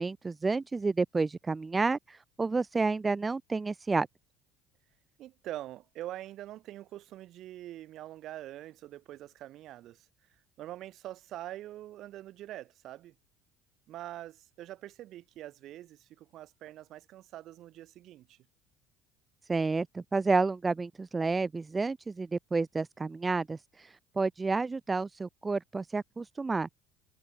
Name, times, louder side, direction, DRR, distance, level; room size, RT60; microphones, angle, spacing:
voice 1, 0.0-4.1 19.5-26.7, right 3 dB, 20° right, 0.5 m, -30 dB
voice 2, 5.2-10.1 10.6-13.1 13.9-18.4, right 14 dB, 60° right, 1.9 m, -44 dB
supercardioid pair, 90°, 0 cm